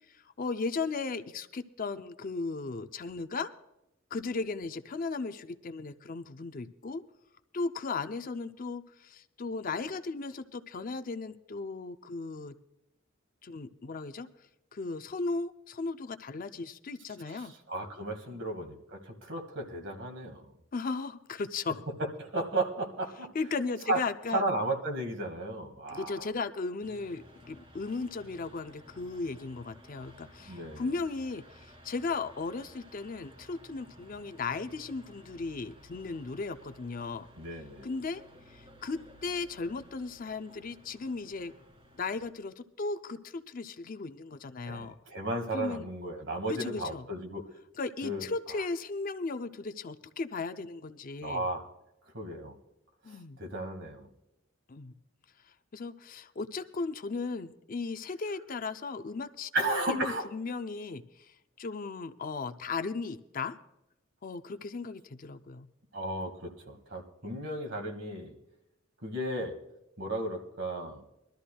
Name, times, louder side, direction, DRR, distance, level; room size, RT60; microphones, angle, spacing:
voice 1, 0.1-3.5 4.1-7.0 7.5-12.6 13.4-14.3 14.7-17.5 18.3-18.4 20.7-21.9 23.3-24.4 25.9-37.3 37.8-38.2 38.5-41.5 42.0-44.9 45.5-45.9 46.5-47.1 47.8-51.5 53.0-53.4 54.7-54.9 55.7-63.6 64.2-65.7, left 4 dB, 40° left, 10 dB, 0.5 m, -36 dB
voice 2, 17.3-20.5 22.0-23.3 23.9-24.0 24.3-26.3 30.5-30.8 37.4-37.9 44.6-47.4 48.0-48.3 51.2-51.7 52.1-52.5 53.1-54.1 59.5-60.3 65.9-68.3 69.0-69.5 70.0-71.0, right 1 dB, 60° right, 4 dB, 1.9 m, -34 dB
sound 1, 26.8-42.3, equal, 25° right, 1.9 m, -55 dB
22.5 x 13.0 x 2.3 m, 0.89 s
head